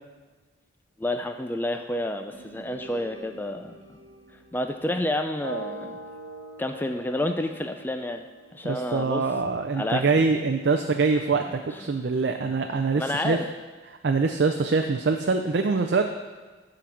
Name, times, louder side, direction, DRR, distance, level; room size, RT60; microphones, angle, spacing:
voice 1, 1.0-4.0 4.5-6.0 6.6-8.2 8.5-9.2 9.8-10.1 13.0-13.5, left 1 dB, 10° left, 6 dB, 0.4 m, -29 dB
sound 1, 2.3-6.4, right 1 dB, 35° right, 1.3 m, -50 dB
sound 2, 5.4-9.4, right 2 dB, 90° right, 0.9 m, -42 dB
voice 2, 8.6-13.4 14.0-16.1, right 4 dB, 60° right, 5 dB, 0.5 m, -24 dB
11.0 x 3.9 x 7.3 m, 1.3 s
head